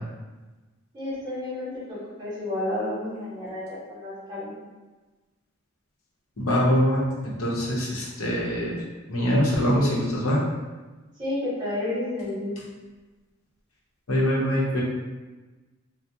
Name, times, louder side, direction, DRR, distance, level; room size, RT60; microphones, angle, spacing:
voice 1, 0.9-4.5 9.7-9.9 11.2-12.5, left 1 dB, 20° right, -9 dB, 1.3 m, -31 dB
voice 2, 6.4-8.7 9.1-10.4 14.1-14.8, equal, 75° left, -4 dB, 0.8 m, -23 dB
2.8 x 2.0 x 3.4 m, 1.2 s
head